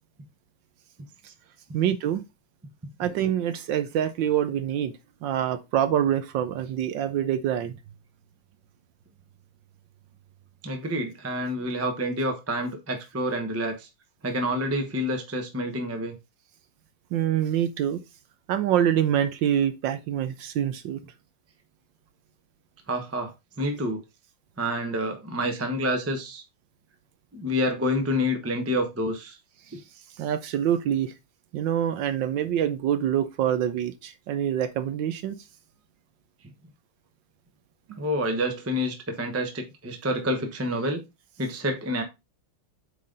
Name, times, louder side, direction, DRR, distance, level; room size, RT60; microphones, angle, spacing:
voice 1, 1.7-2.2 3.0-4.9 5.2-7.8 17.1-18.0 18.5-21.0 30.2-31.1 31.5-35.4, right 10 dB, 70° right, 1.2 m, -25 dB
voice 2, 10.6-13.9 14.2-16.1 22.9-24.0 24.6-26.4 27.3-29.4 29.7-29.8 38.0-41.0 41.4-42.0, equal, 15° right, 0.4 m, -28 dB
8.4 x 3.8 x 3.8 m
omnidirectional pair, 2.4 m